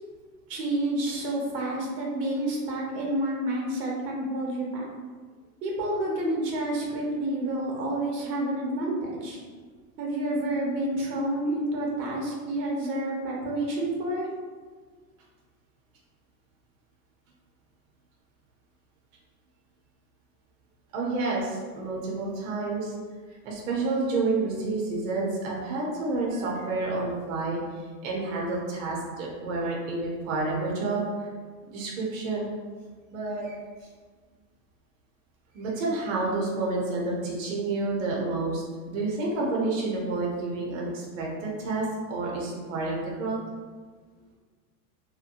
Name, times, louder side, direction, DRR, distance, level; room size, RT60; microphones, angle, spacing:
voice 1, 0.5-4.9 5.6-9.4 10.0-14.3, right 1 dB, 90° right, -2 dB, 0.9 m, -29 dB
voice 2, 20.9-22.9 23.4-27.6 28.0-31.3 31.7-32.5 33.1-33.6 35.5-43.4, right 3 dB, 55° right, -3 dB, 0.7 m, -29 dB
2.7 x 2.1 x 2.5 m, 1.5 s
supercardioid pair, 165°, 48 cm